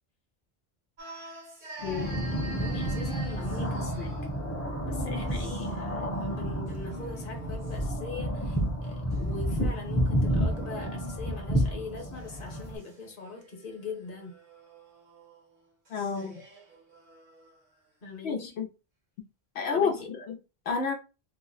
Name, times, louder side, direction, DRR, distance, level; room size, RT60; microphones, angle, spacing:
sound 1, 1.0-4.4 5.2-5.8 6.1-7.8 8.8-11.6 12.0-17.6, right 1 dB, 50° right, 1.2 m, -48 dB
voice 1, 1.8-2.3 2.6-4.1 4.8-14.4 18.0-18.5 19.7-20.2, left 4 dB, 60° left, 1.1 m, -41 dB
sound 2, 1.8-12.8, equal, 20° left, 0.6 m, -30 dB
voice 2, 15.9-16.4 18.2-18.7 19.5-19.9 20.3-20.4 20.7-20.9, left 5 dB, 90° left, 0.9 m, -29 dB
2.9 x 2.0 x 3.8 m
omnidirectional pair, 1.0 m